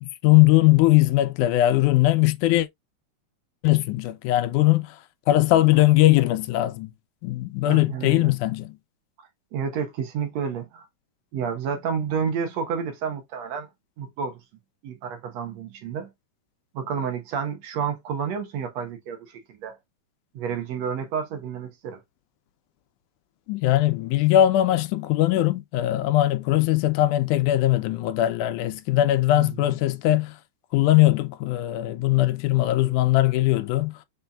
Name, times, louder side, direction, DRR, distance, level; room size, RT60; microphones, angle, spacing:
voice 1, 0.0-2.7 3.6-5.0 5.3-6.9 7.2-8.8 23.5-30.4 30.7-34.0, left 15 dB, 85° left, 2.1 m, -20 dB
voice 2, 7.6-8.3 9.2-10.9 11.3-13.7 14.0-14.4 14.8-16.1 16.7-19.8 20.3-22.0 29.3-29.6, right 6 dB, 65° right, 2.1 m, -30 dB
5.6 x 4.1 x 2.3 m
omnidirectional pair, 3.5 m